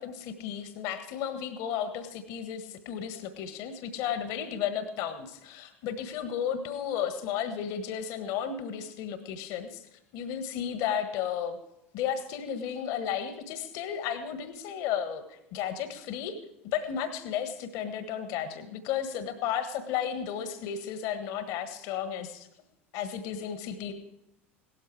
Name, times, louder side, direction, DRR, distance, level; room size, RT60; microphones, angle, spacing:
voice 1, 0.0-9.9 10.1-11.6 11.9-16.4 16.6-22.5 22.9-23.9, left 8 dB, 50° left, 10 dB, 1.5 m, -33 dB
17.5 x 13.0 x 4.8 m, 0.86 s
figure-of-eight pair, 75°, 7 cm